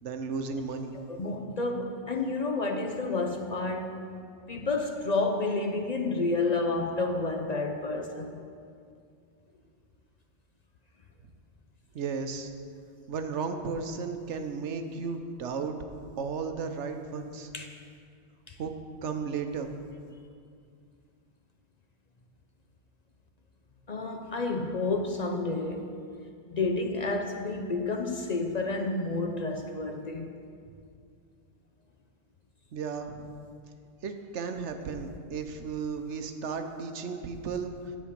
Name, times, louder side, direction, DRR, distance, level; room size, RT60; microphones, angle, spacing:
voice 1, 0.0-0.9 4.5-4.7 11.9-12.5 13.1-15.7 16.2-17.5 18.6-18.7 19.0-19.7 32.7-33.3 34.0-37.7, right 5 dB, 85° right, 1.1 m, -34 dB
voice 2, 0.9-4.0 4.5-8.3 17.5-17.7 18.5-18.6 23.9-25.9 26.5-30.3, left 3 dB, 45° left, 0.6 m, -30 dB
10.0 x 7.5 x 5.2 m
omnidirectional pair, 1.2 m